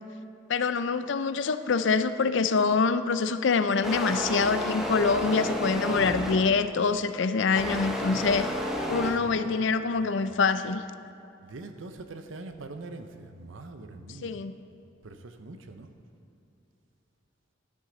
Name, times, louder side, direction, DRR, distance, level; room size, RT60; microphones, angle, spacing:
voice 1, 0.5-8.5 8.9-10.8 14.2-14.5, left 4 dB, 70° left, 11 dB, 0.5 m, -25 dB
sound 1, 3.8-6.6 7.5-9.1, left 1 dB, 5° right, 0.9 m, -31 dB
voice 2, 9.1-9.6 9.9-10.4 11.4-14.4 15.0-15.9, right 2 dB, 85° right, 8 dB, 0.8 m, -43 dB
12.5 x 10.0 x 3.9 m, 2.7 s
head